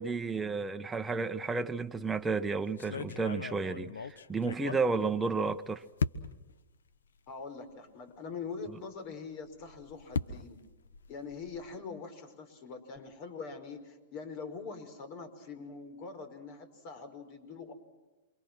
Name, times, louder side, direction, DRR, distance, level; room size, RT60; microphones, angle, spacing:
voice 1, 0.0-5.8, right 4 dB, 10° right, 1.2 m, -32 dB
sound 1, 1.9-2.2 2.8-5.5 6.0-6.5 7.3-7.4 7.7-7.8 9.4-11.8, left 5 dB, 85° left, 1.2 m, -38 dB
voice 2, 7.3-10.6 11.1-17.7, left 5 dB, 50° left, 5.5 m, -43 dB
28.0 x 25.0 x 6.3 m
hypercardioid pair, 120°, 0 cm